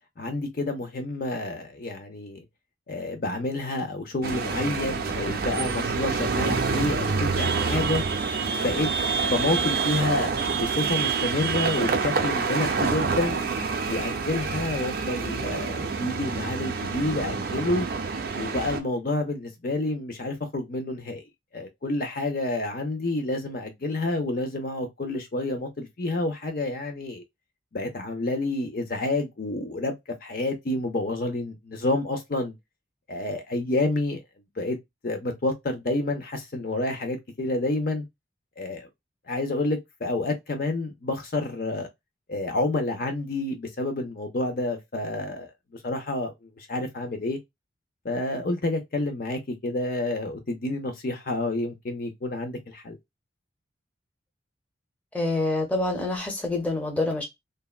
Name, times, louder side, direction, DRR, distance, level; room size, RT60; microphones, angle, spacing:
voice 1, 0.2-2.4 2.9-8.0 8.6-8.9 9.3-13.4 13.9-17.9 18.3-21.2 21.5-27.2 27.7-29.9 30.2-32.6 33.1-34.2 34.6-34.8 35.0-38.0 38.6-38.9 39.3-41.9 42.3-45.5 45.8-47.4 48.0-53.0, left 2 dB, 50° left, 0.6 m, -29 dB
sound 1, 4.2-18.8, right 4 dB, 50° right, 0.5 m, -27 dB
voice 2, 55.1-57.2, left 2 dB, 5° left, 0.7 m, -26 dB
3.4 x 2.1 x 2.3 m
head